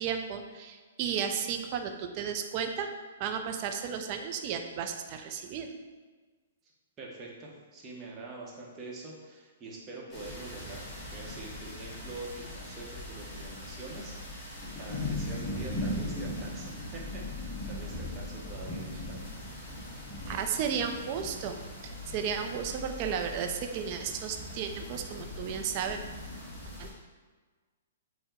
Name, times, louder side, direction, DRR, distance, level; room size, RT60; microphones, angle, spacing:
voice 1, 0.0-2.9 3.2-5.7 20.3-21.6 21.8-26.0 26.8-26.9, right 7 dB, 40° right, 5 dB, 0.4 m, -33 dB
voice 2, 7.0-10.8 11.1-14.5 14.8-19.2, right 3 dB, 25° right, -3 dB, 0.8 m, -45 dB
sound 1, 10.1-26.9, left 1 dB, 20° left, 1.5 m, -39 dB
4.4 x 2.1 x 3.6 m, 1.4 s
hypercardioid pair, 135°, 0 cm